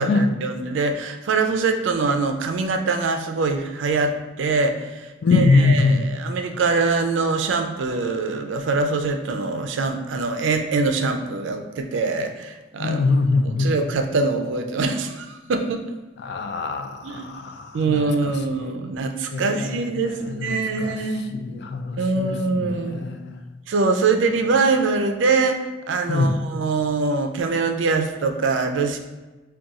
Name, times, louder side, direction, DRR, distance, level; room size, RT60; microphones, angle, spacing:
voice 1, 0.0-13.1 13.4-15.8 17.0-17.3 17.7-21.3 22.0-23.0 23.7-29.0, right 3 dB, 65° right, 6 dB, 0.4 m, -23 dB
voice 2, 5.2-6.1 12.8-13.7 16.2-18.3 19.3-19.8 20.3-20.5 20.8-21.0 21.3-22.3 22.7-23.4 26.1-26.3, left 3 dB, 55° left, 7 dB, 0.3 m, -22 dB
4.0 x 2.3 x 3.5 m, 1.2 s
head